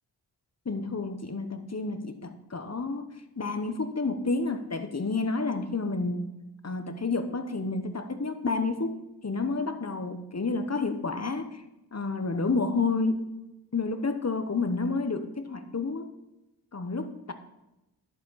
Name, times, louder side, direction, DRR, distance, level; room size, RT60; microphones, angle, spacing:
voice 1, 0.7-3.1 3.4-6.3 6.6-8.9 9.2-11.6 11.9-13.2 13.7-16.1 16.7-17.3, left 3 dB, 40° left, 9 dB, 1.0 m, -30 dB
11.0 x 7.2 x 4.1 m, 0.94 s
cardioid pair, 50°, 41 cm